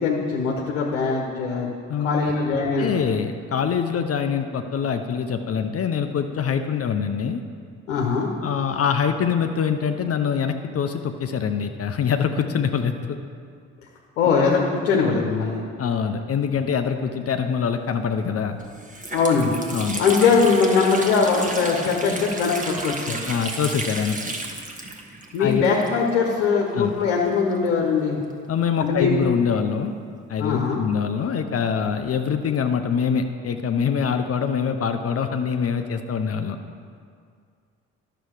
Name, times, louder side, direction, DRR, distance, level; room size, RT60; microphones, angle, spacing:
voice 1, 0.0-1.7 2.0-2.9 7.9-8.3 14.2-15.6 19.1-19.5 20.0-23.2 25.3-28.2 28.8-29.1 30.4-30.9, left 5 dB, 80° left, -1 dB, 1.1 m, -21 dB
voice 2, 1.9-2.3 2.8-7.4 8.4-13.2 15.8-18.6 19.7-20.1 23.3-24.1 25.4-25.6 26.7-26.9 28.5-29.9 30.3-36.6, left 7 dB, 40° left, 7 dB, 0.7 m, -24 dB
Water tap faucet, 18.1-18.2 18.6-26.3 26.6-26.7 27.5-29.1, right 2 dB, 20° right, 1.4 m, -33 dB
11.5 x 6.9 x 4.8 m, 2.2 s
hypercardioid pair, 50°, 36 cm